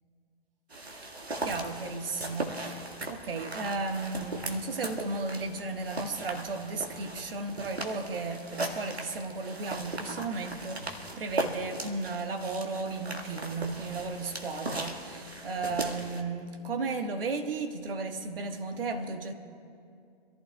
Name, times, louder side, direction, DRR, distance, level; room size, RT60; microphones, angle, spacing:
sound 1, 0.7-16.2, right 2 dB, 85° right, 1.9 m, -38 dB
voice 1, 1.4-19.3, right 3 dB, 65° right, 1.6 m, -34 dB
26.5 x 14.5 x 2.4 m
figure-of-eight pair, 120°, 31 cm